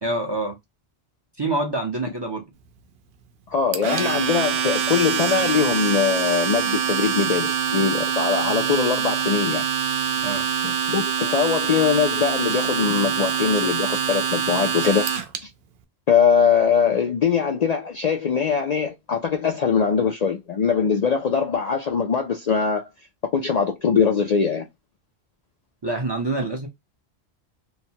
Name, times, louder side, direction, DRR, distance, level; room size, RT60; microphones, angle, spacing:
voice 1, 0.0-0.6 1.4-2.4 10.2-10.5 25.8-26.7, right 2 dB, 30° right, 0.5 m, -26 dB
voice 2, 3.5-9.7 10.6-15.1 15.4-15.5 16.1-22.9 23.3-24.6, left 6 dB, 55° left, 0.5 m, -22 dB
Domestic sounds home sounds, 3.7-15.4, right 8 dB, 70° right, 0.8 m, -24 dB
3.0 x 2.1 x 2.7 m
omnidirectional pair, 1.1 m